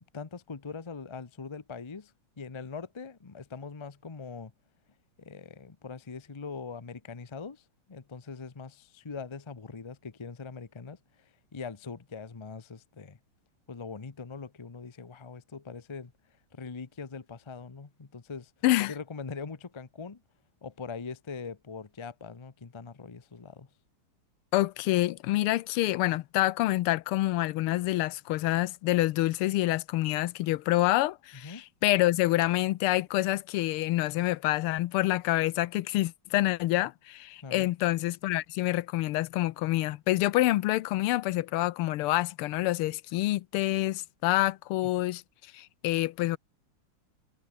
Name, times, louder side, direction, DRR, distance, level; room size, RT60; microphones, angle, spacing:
voice 1, 0.0-4.5 5.2-13.2 13.7-16.1 16.5-18.5 18.9-20.2 20.6-23.7 31.4-31.6 37.4-37.7 44.8-44.9, left 5 dB, 50° left, 0.3 m, -42 dB
voice 2, 24.5-45.2 45.5-46.4, left 16 dB, 85° left, 1.6 m, -27 dB
omnidirectional pair, 2.4 m